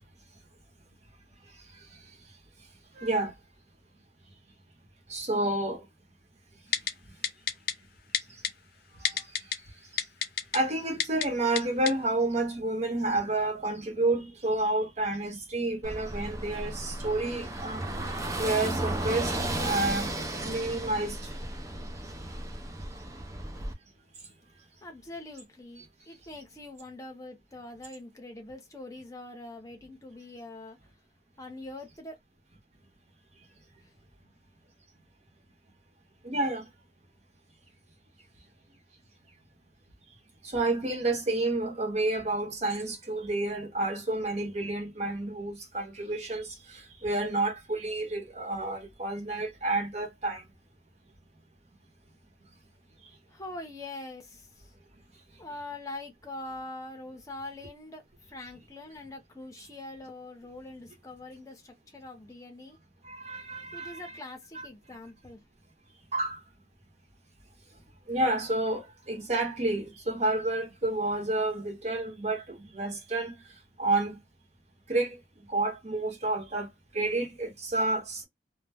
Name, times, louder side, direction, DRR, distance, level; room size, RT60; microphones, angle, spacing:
voice 1, 2.9-3.3 5.1-5.9 9.0-9.3 10.5-20.1 20.4-21.3 36.2-36.6 40.4-50.4 63.0-64.0 66.1-66.4 68.1-73.4 73.8-74.2 74.9-75.2 75.5-76.7 76.9-78.2, right 2 dB, 40° right, 0.8 m, -30 dB
Typing, 6.7-6.9 7.2-7.7 8.1-8.5 9.0-9.6 10.0-10.6 11.0-11.3 11.6-11.7 11.9-12.0, left 9 dB, 55° left, 0.4 m, -27 dB
Car passing by / Engine, 15.8-23.7, right 1 dB, 20° right, 0.4 m, -34 dB
voice 2, 24.8-30.8 31.4-32.2 33.8-33.9 53.3-54.7 55.4-58.0 58.3-62.8 63.7-65.4, left 2 dB, 20° left, 0.7 m, -43 dB
2.2 x 2.0 x 3.3 m
head